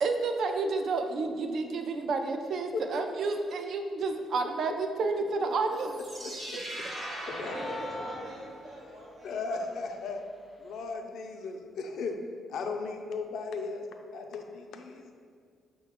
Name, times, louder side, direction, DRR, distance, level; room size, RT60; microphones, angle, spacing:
voice 1, 0.0-5.9, right 3 dB, 65° right, 5 dB, 0.3 m, -30 dB
sound 1, 5.7-8.9, right 1 dB, 30° right, 0.8 m, -40 dB
voice 2, 7.4-9.8, equal, 85° right, -9 dB, 0.8 m, -43 dB
sound 2, 7.5-9.0, left 2 dB, 10° left, 0.4 m, -42 dB
voice 3, 9.2-10.2 10.6-12.2 12.5-13.9 14.1-15.1, left 4 dB, 75° left, 4 dB, 0.4 m, -36 dB
5.5 x 2.2 x 3.4 m, 2.1 s
cardioid pair, 90°, 0 cm